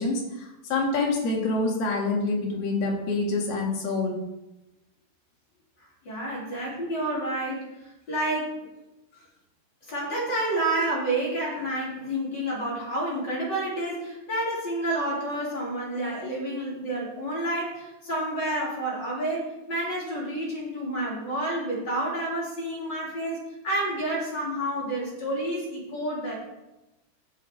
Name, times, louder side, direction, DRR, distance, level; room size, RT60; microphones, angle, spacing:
voice 1, 0.0-4.2 6.5-6.8, left 3 dB, 65° left, -1 dB, 3.8 m, -27 dB
voice 2, 6.0-7.7 8.1-8.6 9.1-9.2 9.9-26.4, right 1 dB, 25° left, -5 dB, 3.7 m, -29 dB
12.5 x 7.6 x 4.7 m, 0.98 s
omnidirectional pair, 5.1 m